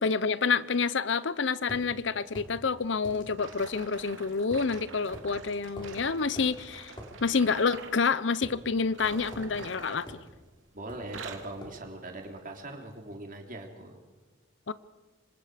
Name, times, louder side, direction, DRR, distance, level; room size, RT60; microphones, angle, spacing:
voice 1, 0.0-6.9 7.2-10.1 14.7-14.8, left 5 dB, 70° left, 17 dB, 0.8 m, -28 dB
sound 1, 1.7-1.9 2.3-2.5 3.0-3.3 4.5-4.7 5.1-5.3 5.8-6.0 6.4-6.5 7.0-7.1 8.4-9.0 9.3-9.5 10.1-10.3 10.9-11.2 11.6-11.8, equal, 25° left, 5.0 m, -44 dB
sound 2, 3.4-8.0 8.8-10.6 10.9-11.6 12.2-12.4 13.0-13.1, right 4 dB, 85° right, 2.5 m, -46 dB
voice 2, 10.7-14.0, right 2 dB, 45° right, 2 dB, 3.5 m, -41 dB
27.0 x 25.5 x 5.1 m, 1.2 s
head